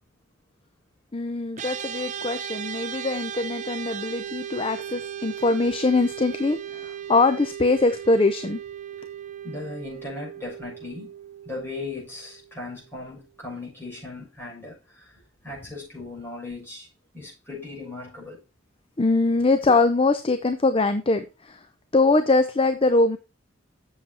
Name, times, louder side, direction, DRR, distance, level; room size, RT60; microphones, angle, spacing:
voice 1, 1.1-8.6 19.0-21.6 21.9-23.2, left 3 dB, 30° left, 0.6 m, -22 dB
sound 1, 1.6-13.0, right 9 dB, 40° right, 0.5 m, -37 dB
voice 2, 9.4-11.1 11.4-16.9 17.1-18.4, left 3 dB, 10° left, 6.6 m, -38 dB
7.6 x 7.4 x 4.4 m
head